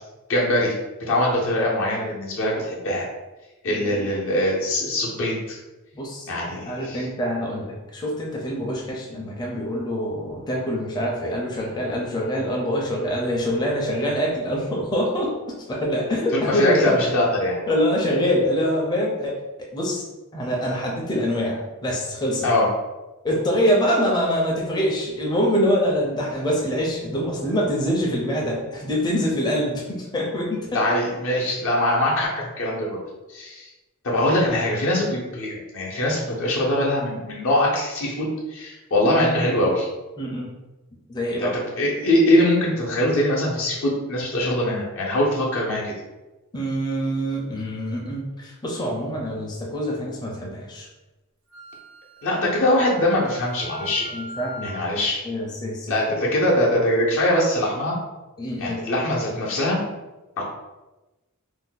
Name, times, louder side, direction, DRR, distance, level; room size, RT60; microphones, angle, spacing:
voice 1, 0.3-0.7 1.1-3.1 3.6-5.6 6.3-7.0 16.3-17.6 22.4-22.7 30.7-33.0 33.3-33.7 34.0-39.9 41.4-41.5 41.8-45.9 52.2-54.1 54.6-55.2 55.9-58.0 58.6-59.8 60.4-60.5, left 1 dB, 65° left, -4 dB, 0.7 m, -22 dB
voice 2, 3.7-4.1 5.9-15.4 15.7-17.0 17.7-19.4 19.7-20.0 20.3-22.5 23.2-30.8 40.2-40.5 41.1-41.5 46.5-50.9 54.1-54.7 55.2-56.3 58.4-58.8, equal, 20° left, -3 dB, 0.5 m, -25 dB
Wind instrument woodwind instrument, 51.5-54.9, right 1 dB, 60° right, 0.6 m, -40 dB
2.6 x 2.1 x 3.8 m, 1.1 s
head